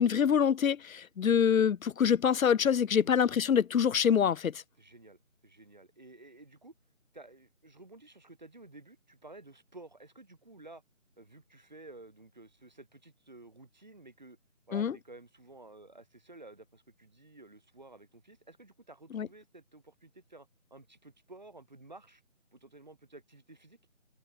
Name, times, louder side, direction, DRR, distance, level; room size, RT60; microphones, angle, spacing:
voice 1, 0.0-4.6 14.7-14.9 19.1-19.3, left 8 dB, 90° left, 0.6 m, -25 dB
voice 2, 4.8-6.7 7.1-10.8 11.2-14.4 14.7-22.2 22.5-23.8, right 2 dB, 35° right, 2.5 m, -53 dB
open air
figure-of-eight pair, 180°, 40 cm